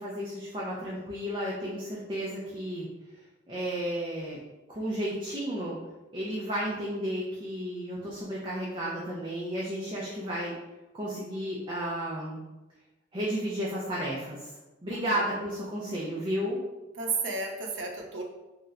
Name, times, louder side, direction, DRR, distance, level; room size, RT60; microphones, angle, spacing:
voice 1, 0.0-2.9 3.5-4.4 4.7-5.8 6.1-10.6 10.9-12.4 13.1-16.6, equal, 25° right, -6 dB, 0.5 m, -33 dB
voice 2, 14.9-15.2 17.0-18.2, right 4 dB, 80° right, 0 dB, 0.6 m, -33 dB
3.1 x 2.9 x 2.4 m, 1.1 s
head